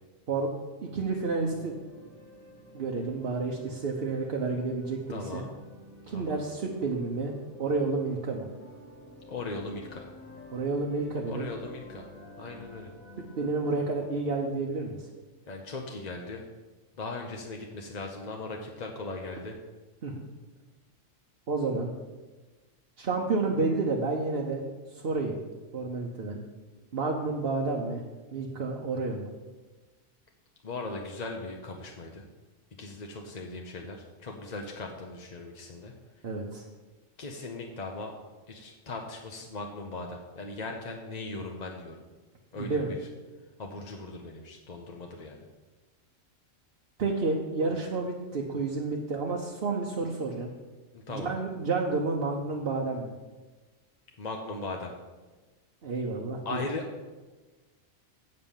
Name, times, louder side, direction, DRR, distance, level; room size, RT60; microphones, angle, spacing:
sound 1, 0.9-13.9, equal, 10° left, 1.3 m, -51 dB
voice 1, 0.9-1.8 2.7-5.4 6.1-7.3 7.6-8.5 10.5-11.5 13.4-15.1 20.0-20.2 21.5-21.9 23.0-24.6 24.9-25.4 25.7-26.4 26.9-28.0 28.3-29.3 36.2-36.7 42.5-42.9 47.0-50.5 51.1-53.1 55.8-56.7, right 3 dB, 55° right, -1 dB, 1.0 m, -30 dB
voice 2, 5.1-5.5 6.1-6.4 9.3-10.1 11.3-12.1 12.4-12.9 15.5-16.4 17.0-19.6 30.6-32.2 32.8-35.9 37.2-38.1 38.5-42.0 42.5-43.0 43.6-45.4 47.6-47.7 50.9-51.3 54.2-54.9 56.4-56.9, left 3 dB, 40° left, 1 dB, 0.7 m, -38 dB
8.1 x 5.4 x 7.2 m, 1.3 s
omnidirectional pair, 1.3 m